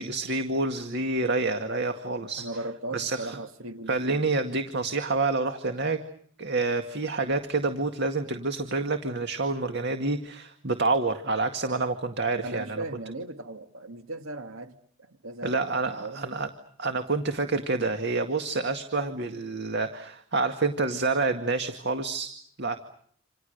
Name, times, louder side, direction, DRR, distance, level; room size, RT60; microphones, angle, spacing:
voice 1, 0.0-2.5 2.9-3.4 3.9-6.0 6.4-12.8 15.4-16.5 16.8-22.3 22.6-22.8, right 3 dB, 55° right, 2.0 m, -28 dB
voice 2, 2.4-4.2 12.4-16.4, right 2 dB, 85° right, 2.0 m, -38 dB
29.0 x 27.5 x 6.7 m
head